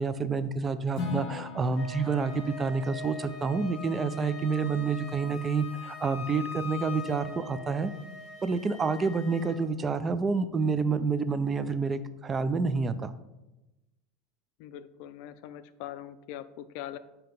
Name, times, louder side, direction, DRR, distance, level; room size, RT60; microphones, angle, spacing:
voice 1, 0.0-7.9 8.4-13.1, right 4 dB, 20° right, 12 dB, 0.4 m, -28 dB
Acoustic guitar / Strum, 0.9-5.0, left 3 dB, 45° left, 1.8 m, -41 dB
Wind instrument woodwind instrument, 1.7-9.6, left 4 dB, 10° left, 2.3 m, -42 dB
voice 2, 14.6-17.0, left 11 dB, 65° left, 14 dB, 0.4 m, -42 dB
7.5 x 2.8 x 5.2 m, 0.98 s
supercardioid pair, 135°, 0 cm